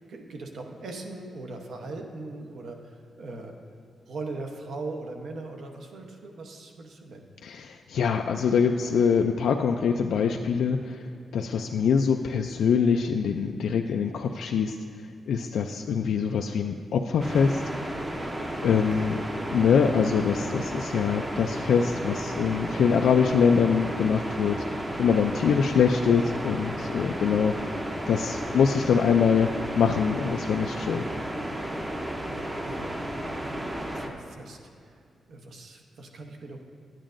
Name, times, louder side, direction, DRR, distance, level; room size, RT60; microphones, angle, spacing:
voice 1, 0.0-3.5 4.1-7.3 11.6-11.9 18.9-19.0 31.7-32.9 33.4-33.6 33.9-34.9 35.3-36.6, right 2 dB, 65° right, 3 dB, 0.8 m, -40 dB
voice 2, 7.4-11.0 11.3-14.8 15.3-17.6 18.6-19.1 19.5-27.8 28.1-29.5 29.8-31.1, left 6 dB, 85° left, 3 dB, 0.3 m, -24 dB
sound 1, 17.2-34.1, right 1 dB, 15° right, 0.6 m, -33 dB
11.5 x 8.9 x 2.5 m, 2.4 s
wide cardioid pair, 155°, 0 cm